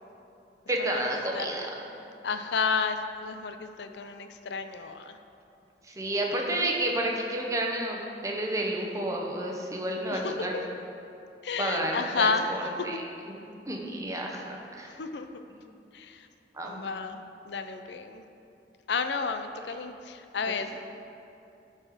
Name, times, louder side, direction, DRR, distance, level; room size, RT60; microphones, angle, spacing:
voice 1, 0.7-1.6 5.9-10.6 11.6-13.0 13.7-14.9 16.5-16.8, right 1 dB, 20° right, -1 dB, 0.9 m, -30 dB
voice 2, 1.3-1.7 2.2-5.2 10.1-10.6 11.4-13.0 14.9-15.3 15.9-16.3 16.6-18.2 18.9-20.7, left 5 dB, 70° left, 8 dB, 0.5 m, -32 dB
12.0 x 4.3 x 5.0 m, 2.7 s
head